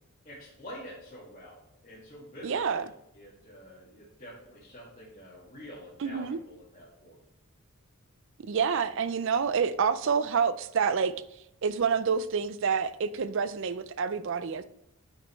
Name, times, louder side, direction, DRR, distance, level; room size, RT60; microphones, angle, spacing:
voice 1, 0.2-2.9 3.1-7.2, equal, 35° left, 2.0 m, -47 dB
voice 2, 2.4-2.9 6.0-6.4 8.4-11.1 11.6-14.6, right 6 dB, 55° right, 0.4 m, -28 dB
9.0 x 5.1 x 3.1 m
head